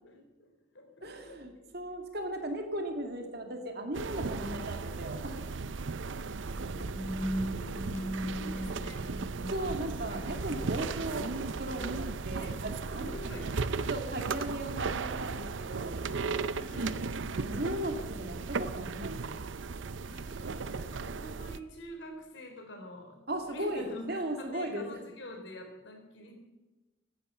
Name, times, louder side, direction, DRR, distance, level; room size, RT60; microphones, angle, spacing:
voice 1, 0.0-1.7 8.3-9.4 12.4-12.6 12.9-13.5 14.2-14.5 16.4-17.0 20.1-26.3, equal, 65° left, 4 dB, 3.9 m, -46 dB
voice 2, 1.0-5.7 9.5-13.4 13.9-16.0 17.3-19.5 23.3-25.0, right 1 dB, 55° right, 4 dB, 2.2 m, -37 dB
sound 1, 3.9-21.6, right 4 dB, 70° right, 0.6 m, -36 dB
sound 2, 6.4-12.1, equal, 15° left, 6.0 m, -39 dB
16.5 x 13.0 x 5.6 m, 1.1 s
head